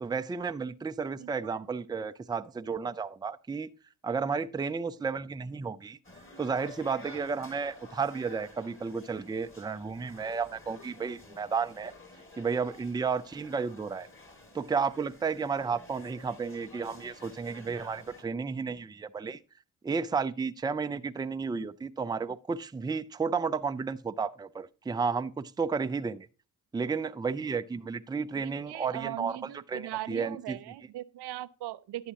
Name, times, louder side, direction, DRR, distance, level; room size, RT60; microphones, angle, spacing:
voice 1, 0.0-3.7 4.0-6.0 6.4-11.9 12.4-14.1 14.5-19.4 19.8-26.3 26.7-30.6, right 5 dB, 10° right, 0.4 m, -32 dB
voice 2, 1.2-1.6 28.3-32.1, right 14 dB, 65° right, 0.5 m, -39 dB
sound 1, 6.0-18.2, left 2 dB, 30° left, 2.2 m, -52 dB
11.0 x 7.2 x 2.9 m
hypercardioid pair, 40°, 43 cm